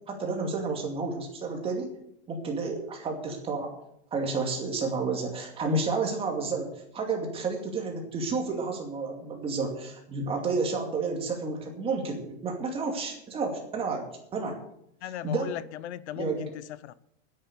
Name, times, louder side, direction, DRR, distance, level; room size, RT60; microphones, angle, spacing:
voice 1, 0.0-1.9 2.3-3.7 4.1-14.1 14.3-14.6 15.2-15.5 16.2-16.5, right 3 dB, 15° right, 2.4 m, -31 dB
voice 2, 15.0-16.9, left 12 dB, 80° left, 0.7 m, -38 dB
10.5 x 8.5 x 8.5 m
supercardioid pair, 165°, 34 cm